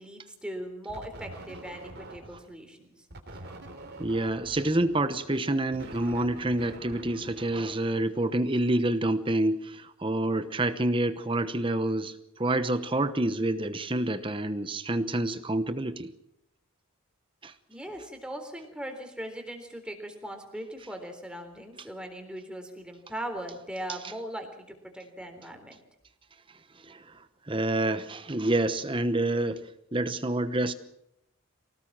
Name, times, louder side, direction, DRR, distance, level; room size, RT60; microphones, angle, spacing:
voice 1, 0.0-3.1 17.7-25.8, right 1 dB, 5° right, 4 dB, 3.7 m, -39 dB
sound 1, 0.9-2.5 3.1-8.2, right 1 dB, 50° right, 3.3 m, -45 dB
voice 2, 4.0-16.1 17.4-17.5 26.8-30.7, right 1 dB, 25° right, 12 dB, 1.0 m, -28 dB
25.0 x 18.0 x 7.5 m, 0.79 s
head